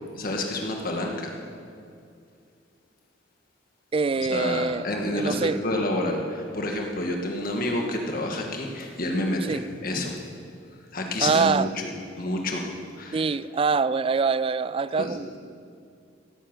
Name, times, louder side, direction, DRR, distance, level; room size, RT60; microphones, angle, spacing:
voice 1, 0.2-1.4 4.2-10.2 10.9-11.7 12.2-13.3 14.9-15.1, left 1 dB, 50° left, 1 dB, 1.7 m, -29 dB
voice 2, 3.9-4.9 5.1-5.6 9.5-9.6 11.2-11.7 13.1-15.4, right 4 dB, 30° right, 16 dB, 0.3 m, -24 dB
16.5 x 10.5 x 7.5 m, 2.4 s
head